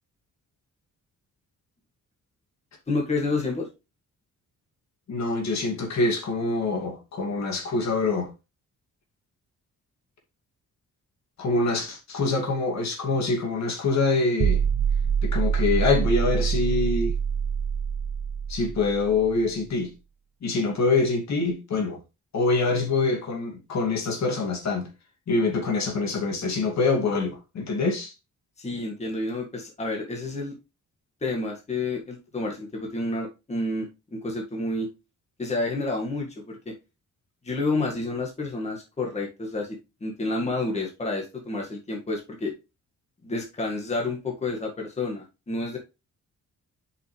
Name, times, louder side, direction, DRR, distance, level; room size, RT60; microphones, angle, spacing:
voice 1, 2.9-3.7 28.6-30.6 31.2-34.9 35.4-36.7 37.4-42.5 43.2-45.8, left 2 dB, 20° left, 1.8 m, -29 dB
voice 2, 5.1-8.3 11.4-14.6 15.2-17.2 18.5-19.9 20.4-22.0 22.3-24.9 25.3-28.1, left 3 dB, 65° left, 2.5 m, -25 dB
sound 1, 14.4-19.4, right 7 dB, 45° right, 0.5 m, -25 dB
7.8 x 5.6 x 3.2 m
wide cardioid pair, 155°, 30 cm